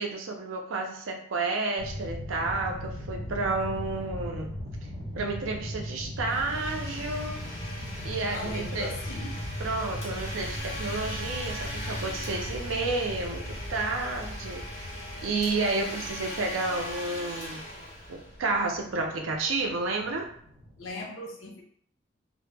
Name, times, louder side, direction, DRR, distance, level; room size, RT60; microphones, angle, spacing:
voice 1, 0.0-4.5 5.2-7.4 8.0-9.0 9.6-14.9 15.2-17.6 18.1-20.3, right 3 dB, 80° right, 2 dB, 0.5 m, -31 dB
sound 1, 1.8-20.9, equal, 65° right, 0.9 m, -39 dB
Domestic sounds home sounds, 6.2-18.7, left 1 dB, 35° left, 0.7 m, -40 dB
voice 2, 8.3-9.4 20.8-21.6, left 2 dB, 75° left, 1 dB, 0.5 m, -38 dB
2.0 x 2.0 x 3.2 m, 0.62 s
head